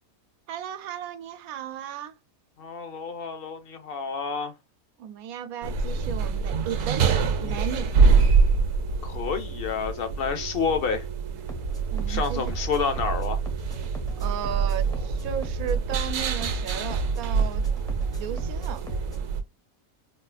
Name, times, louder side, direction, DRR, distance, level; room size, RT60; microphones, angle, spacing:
voice 1, 0.5-2.1 5.0-7.0 7.4-8.0 11.9-12.5 14.2-17.6 18.1-18.9, right 9 dB, 90° right, 1.1 m, -35 dB
voice 2, 2.6-4.5 9.0-11.0 12.1-13.4, left 6 dB, 60° left, 0.6 m, -29 dB
sound 1, 5.6-19.4, right 5 dB, 70° right, 1.0 m, -25 dB
sound 2, 11.5-19.3, left 2 dB, 5° left, 0.3 m, -40 dB
4.2 x 2.3 x 2.4 m
omnidirectional pair, 1.5 m